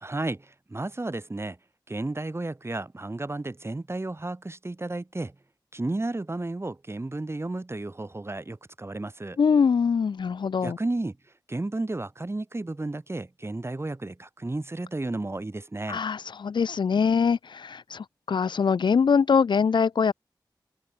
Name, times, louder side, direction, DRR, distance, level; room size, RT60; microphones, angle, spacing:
voice 1, 0.0-1.6 1.9-5.3 5.7-9.4 10.6-11.1 11.5-16.0, right 2 dB, 30° right, 1.0 m, -32 dB
voice 2, 9.4-10.8 15.9-20.1, left 6 dB, 70° left, 0.3 m, -23 dB
cardioid pair, 40°, 8 cm